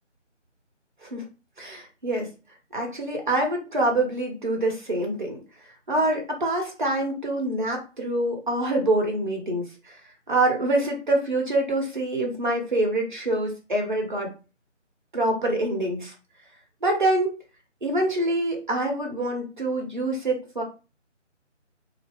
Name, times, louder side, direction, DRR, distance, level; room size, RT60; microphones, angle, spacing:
voice 1, 1.6-2.3 2.7-5.4 5.9-10.0 10.3-14.3 15.1-16.1 16.8-17.3 17.8-20.6, right 1 dB, 40° right, 1 dB, 1.0 m, -25 dB
2.7 x 2.5 x 3.5 m, 0.33 s
figure-of-eight pair, 160°, 37 cm